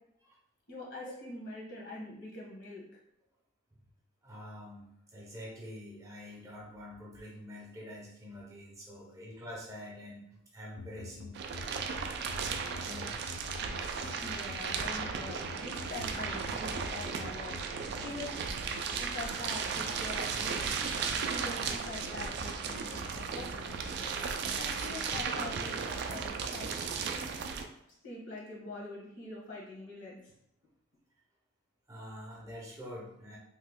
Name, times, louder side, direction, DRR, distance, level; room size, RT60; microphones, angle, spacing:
voice 1, 0.7-2.8 12.5-12.6 14.2-17.6 18.0-18.4 19.0-20.7 21.3-23.7 24.5-25.8 26.1-26.7 28.0-30.3, left 2 dB, 65° left, -5 dB, 1.2 m, -44 dB
voice 2, 4.2-11.4 12.7-13.5 13.8-14.2 21.3-21.4 31.9-33.4, left 1 dB, 15° right, -2 dB, 0.6 m, -46 dB
sound 1, 10.8-26.3, left 5 dB, 80° left, 0.3 m, -48 dB
sound 2, 11.3-27.7, right 5 dB, 60° right, 0.3 m, -35 dB
3.0 x 2.2 x 3.5 m, 0.79 s
head